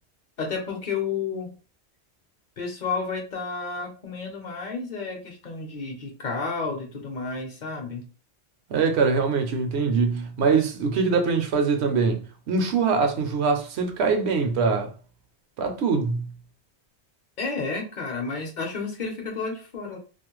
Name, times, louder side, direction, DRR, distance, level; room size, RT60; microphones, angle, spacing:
voice 1, 0.4-1.5 2.6-8.0 17.4-20.0, left 4 dB, 50° left, 0.8 m, -31 dB
voice 2, 8.7-14.9 15.6-16.3, right 4 dB, 75° right, 0.8 m, -23 dB
2.4 x 2.1 x 2.9 m
omnidirectional pair, 1.1 m